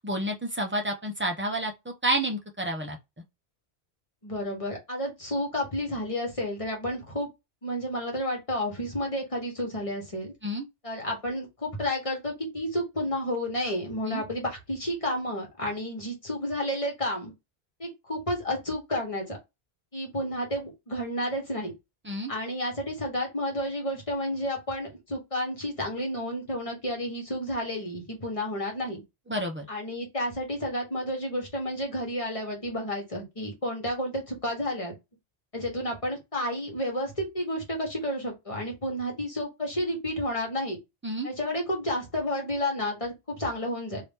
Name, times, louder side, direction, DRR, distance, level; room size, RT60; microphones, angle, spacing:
voice 1, 0.0-3.0 10.4-10.6 14.1-14.2 22.0-22.3 29.3-29.7 41.0-41.3, right 1 dB, 15° right, 0.6 m, -30 dB
voice 2, 4.2-7.3 7.6-10.3 10.8-17.3 17.8-19.4 19.9-21.7 22.3-29.0 29.7-34.9 35.5-40.8 41.2-44.0, left 1 dB, 35° left, 1.3 m, -31 dB
2.8 x 2.8 x 3.5 m
omnidirectional pair, 1.1 m